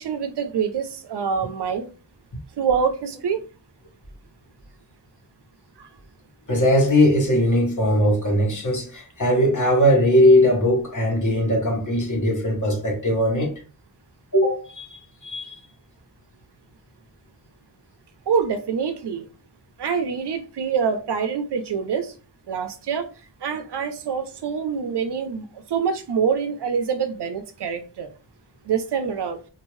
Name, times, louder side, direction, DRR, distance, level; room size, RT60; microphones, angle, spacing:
voice 1, 0.0-1.9 2.6-3.4 5.8-5.9 18.3-19.3 19.8-22.1 22.5-23.1 23.4-28.1 28.6-29.4, right 6 dB, 70° right, 0.5 m, -25 dB
voice 2, 6.5-13.5 14.3-15.5, left 1 dB, 45° left, 1.4 m, -19 dB
2.7 x 2.7 x 3.0 m
wide cardioid pair, 85°, 43 cm